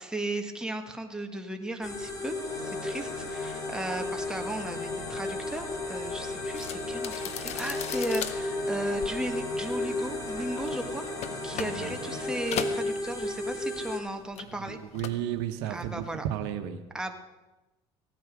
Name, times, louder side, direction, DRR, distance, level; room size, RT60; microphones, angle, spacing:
voice 1, 0.0-11.0 11.4-14.8 15.6-16.2 16.9-17.2, right 1 dB, 5° right, 4 dB, 1.6 m, -36 dB
sound 1, 1.8-14.0, left 2 dB, 25° left, 2.5 m, -34 dB
Organ, 2.3-13.2, left 2 dB, 75° left, 3.9 m, -41 dB
sound 2, 6.5-13.8 14.0-15.3 15.6-16.0, left 10 dB, 60° left, 1.0 m, -39 dB
voice 2, 11.5-11.9 14.9-16.8, right 11 dB, 85° right, 7 dB, 1.1 m, -33 dB
16.0 x 9.3 x 6.2 m, 1.1 s
supercardioid pair, 95°, 13 cm